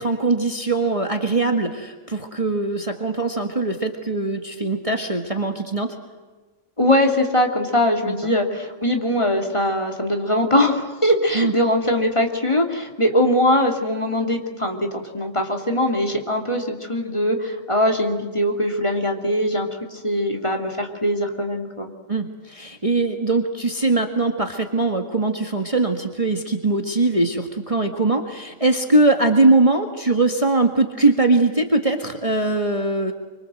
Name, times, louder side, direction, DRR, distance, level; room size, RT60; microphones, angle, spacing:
voice 1, 0.0-6.0 8.1-8.2 11.3-11.5 22.1-33.1, right 2 dB, 25° right, 4 dB, 1.9 m, -21 dB
voice 2, 6.8-21.9, left 1 dB, 20° left, 2 dB, 3.0 m, -21 dB
26.5 x 25.5 x 7.9 m, 1.3 s
omnidirectional pair, 1.4 m